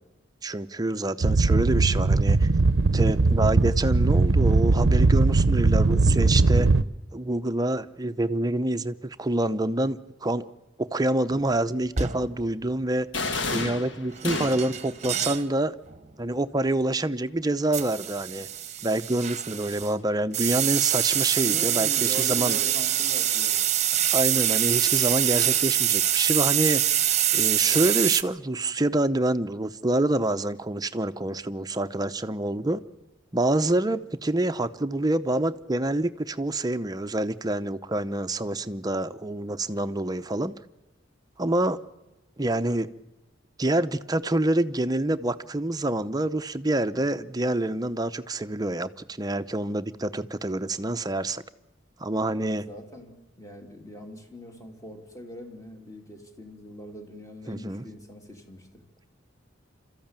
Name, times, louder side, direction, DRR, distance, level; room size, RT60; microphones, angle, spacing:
voice 1, 0.4-2.5 2.9-6.7 7.1-10.5 10.8-13.1 13.5-15.7 16.2-18.5 18.8-22.6 24.1-26.8 27.3-32.8 33.3-40.6 41.4-41.8 42.4-42.9 43.6-51.4 52.0-52.6 57.5-57.9, right 1 dB, 20° right, 10 dB, 0.7 m, -27 dB
sound 1, 1.2-6.8, right 3 dB, 75° right, 0.7 m, -20 dB
sound 2, 11.3-11.5 12.0-12.4 14.2-15.5 15.9-16.1 17.7-19.9 20.3-28.2, right 11 dB, 35° right, 1.0 m, -25 dB
sound 3, 13.1-14.9, left 3 dB, 65° left, 1.7 m, -30 dB
voice 2, 21.4-23.6 52.4-58.8, equal, 15° left, 4 dB, 2.8 m, -41 dB
27.0 x 14.0 x 8.9 m, 1.0 s
head